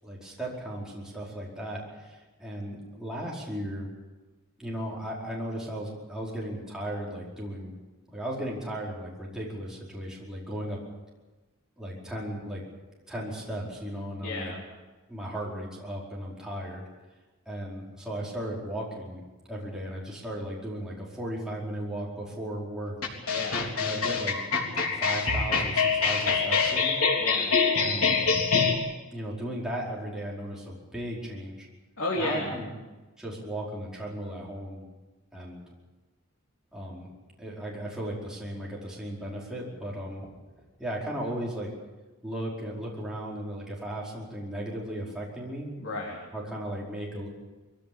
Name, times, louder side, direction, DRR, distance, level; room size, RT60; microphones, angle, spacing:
voice 1, 0.0-3.9 4.6-7.7 8.1-10.8 11.8-12.6 13.1-14.5 15.1-16.8 17.4-19.2 19.5-22.9 23.8-24.4 24.9-27.0 27.8-28.2 29.1-31.7 32.1-32.7 33.2-34.8 35.3-35.6 36.7-37.1 37.4-40.3 40.8-41.7 42.2-45.7 46.3-47.3, right 1 dB, 5° right, -5 dB, 4.9 m, -36 dB
voice 2, 14.2-14.6 23.3-23.6 27.2-27.5 32.0-32.5 45.8-46.2, left 2 dB, 60° left, -3 dB, 3.9 m, -32 dB
sound 1, 23.0-28.7, left 5 dB, 85° left, 3.7 m, -25 dB
23.0 x 16.5 x 8.7 m, 1.2 s
head